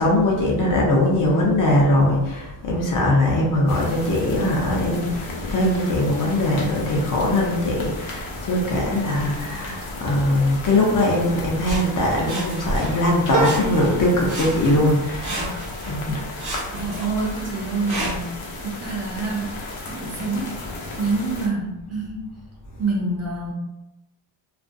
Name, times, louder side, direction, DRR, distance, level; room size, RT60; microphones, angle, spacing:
voice 1, 0.0-15.4 15.8-16.3, left 1 dB, 45° left, -2 dB, 0.5 m, -21 dB
sound 1, 3.7-21.5, left 2 dB, 80° left, 0.7 m, -35 dB
Sawing, 11.6-13.1 13.4-14.0 14.3-16.0 16.4-18.4 19.0-19.1, right 1 dB, 50° right, 0.8 m, -33 dB
sound 2, 13.3-18.1 18.6-19.3 19.6-19.7, right 2 dB, 90° right, 0.6 m, -32 dB
voice 2, 15.3-15.7 16.1-16.2 16.7-18.3 18.6-19.5 19.9-20.6 21.0-22.3 22.8-23.5, right 3 dB, 35° right, -3 dB, 0.5 m, -27 dB
2.4 x 2.2 x 2.5 m, 0.95 s
wide cardioid pair, 170°, 48 cm